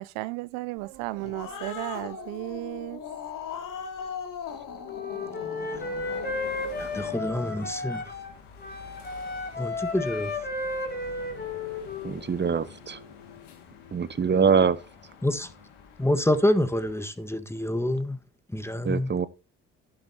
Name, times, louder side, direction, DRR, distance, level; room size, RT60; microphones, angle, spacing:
voice 1, 0.0-3.0, right 20 dB, 75° right, 0.5 m, -34 dB
Growling, 0.9-7.7, left 7 dB, 60° left, 2.5 m, -39 dB
Wind instrument woodwind instrument, 4.9-8.3 8.6-12.2, left 3 dB, 25° left, 3.5 m, -33 dB
sound 1, 5.7-17.1, left 6 dB, 85° left, 2.1 m, -49 dB
voice 2, 6.8-8.0 9.6-10.3 15.2-15.5 16.0-18.2 18.5-19.1, left 1 dB, 5° left, 1.5 m, -27 dB
voice 3, 12.0-13.0 13.9-14.8 18.8-19.3, right 6 dB, 30° right, 0.9 m, -23 dB
11.5 x 11.0 x 2.8 m
hypercardioid pair, 50°, 36 cm